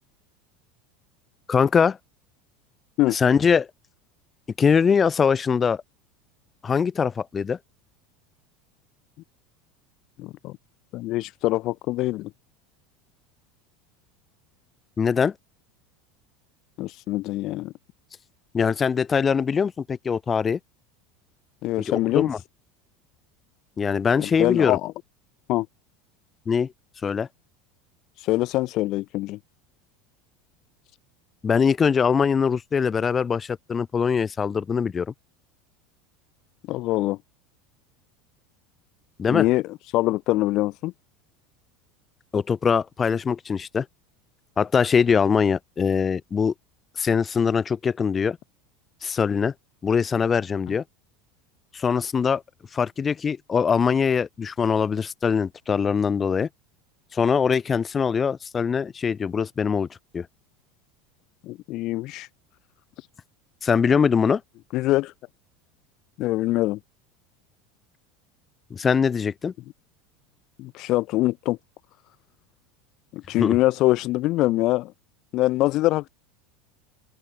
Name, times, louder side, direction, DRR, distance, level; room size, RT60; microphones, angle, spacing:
voice 1, 1.5-2.0 3.1-3.7 4.6-5.8 6.6-7.6 15.0-15.3 18.5-20.6 21.8-22.4 23.8-24.8 26.5-26.7 27.0-27.3 31.4-35.1 39.2-39.5 42.3-43.9 44.6-46.5 47.0-48.4 49.0-49.5 49.8-50.8 51.7-52.4 52.7-56.5 57.1-59.9 60.1-60.3 63.6-64.4 68.7-69.5 73.4-73.6, left 6 dB, 25° left, 3.5 m, -22 dB
voice 2, 10.2-10.6 10.9-12.3 16.8-17.7 21.6-22.3 24.2-24.9 25.5-25.7 28.2-29.4 36.7-37.2 39.3-39.6 39.9-40.9 61.4-62.3 63.0-63.1 64.7-65.1 66.2-66.8 70.6-71.6 73.1-74.9 75.3-76.1, left 18 dB, 55° left, 6.7 m, -24 dB
hypercardioid pair, 80°, 0 cm